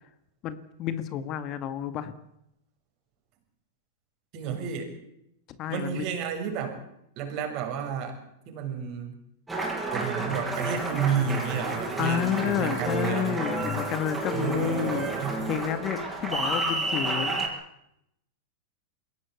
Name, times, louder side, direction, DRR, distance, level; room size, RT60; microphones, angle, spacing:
voice 1, 0.4-2.1 5.6-6.1 12.0-15.1 15.5-17.5, left 10 dB, 40° left, 12 dB, 1.9 m, -30 dB
voice 2, 4.3-4.9 5.7-6.8 7.2-8.2 8.5-9.2 9.9-13.4 14.3-15.4, right 7 dB, 45° right, 4 dB, 6.9 m, -31 dB
Applause, 9.5-17.5, right 2 dB, 10° right, 6.9 m, -31 dB
22.0 x 17.5 x 8.5 m, 0.78 s
hypercardioid pair, 105°, 0 cm